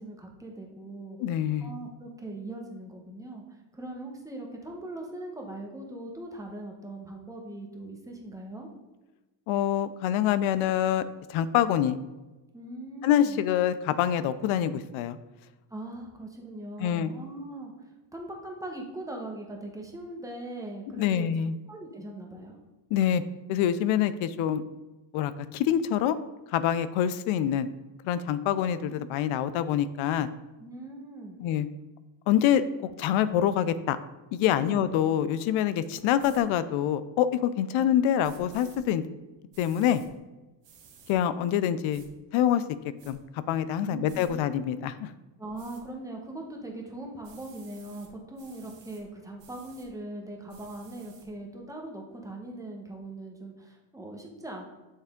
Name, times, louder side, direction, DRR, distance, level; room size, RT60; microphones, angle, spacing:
voice 1, 0.0-1.2 1.6-3.4 3.7-8.7 12.5-13.4 15.7-21.3 21.7-22.5 30.6-31.4 34.6-34.8 43.8-44.4 45.4-54.6, right 1 dB, 5° right, 0 dB, 1.0 m, -40 dB
voice 2, 1.2-1.7 9.5-11.0 11.3-12.0 13.0-15.2 16.8-17.1 21.0-21.5 22.9-23.2 23.5-24.6 25.1-26.2 26.5-27.7 28.0-30.3 31.4-31.7 32.3-32.6 33.0-34.0 34.3-39.0 39.6-40.0 41.1-42.0 42.3-42.6 43.0-45.1, left 10 dB, 70° left, 14 dB, 0.6 m, -25 dB
sound 1, 36.2-36.4 38.2-38.8 39.5-40.1 40.6-41.2 41.9-42.1 42.7-43.1 44.0-44.3 45.6-45.8 47.2-48.1 48.4-49.0 49.4-49.9 50.5-51.3, right 6 dB, 60° right, 1.4 m, -54 dB
8.2 x 3.4 x 3.6 m, 1.1 s
cardioid pair, 120°, 50 cm